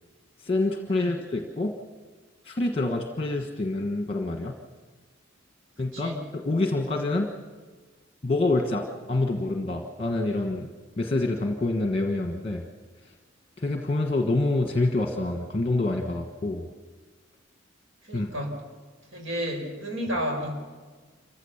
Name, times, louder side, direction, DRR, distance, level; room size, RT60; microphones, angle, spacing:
voice 1, 0.4-1.7 2.4-4.5 5.8-7.3 8.2-10.7 11.0-12.6 13.6-16.7 18.1-18.3, left 2 dB, 30° left, 4 dB, 1.3 m, -27 dB
voice 2, 5.9-6.2 18.1-18.6 19.1-20.6, equal, 75° right, 1 dB, 5.6 m, -31 dB
27.0 x 15.5 x 7.2 m, 1.4 s
head